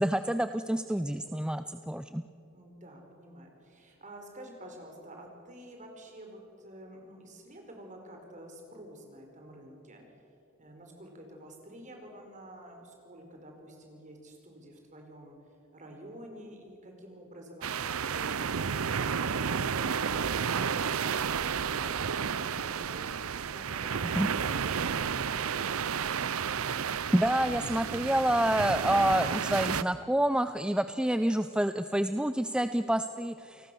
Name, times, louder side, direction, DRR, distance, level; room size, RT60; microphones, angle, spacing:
voice 1, 0.0-2.2 24.2-24.3 26.9-33.7, right 1 dB, 5° right, 10 dB, 0.5 m, -28 dB
voice 2, 2.5-10.0 10.6-15.4 15.7-21.2 21.5-25.8, right 1 dB, 35° right, 2 dB, 4.8 m, -49 dB
sound 1, 17.6-29.8, right 7 dB, 85° right, 0.7 m, -31 dB
28.5 x 19.0 x 7.0 m, 2.8 s
head